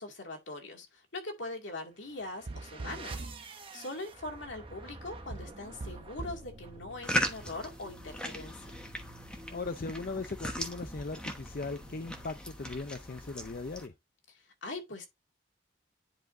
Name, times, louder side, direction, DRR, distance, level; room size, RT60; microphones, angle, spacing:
voice 1, 0.0-3.2 3.7-8.8 14.4-15.1, left 2 dB, 75° left, 2.2 m, -42 dB
sound 1, 1.9-12.6, right 2 dB, 30° right, 1.0 m, -50 dB
sound 2, 2.5-3.5 5.3-6.5, right 2 dB, 60° right, 0.6 m, -41 dB
sound 3, 7.0-13.9, equal, 5° left, 1.0 m, -38 dB
voice 2, 9.5-13.9, left 3 dB, 50° left, 0.5 m, -38 dB
10.5 x 5.0 x 2.6 m
head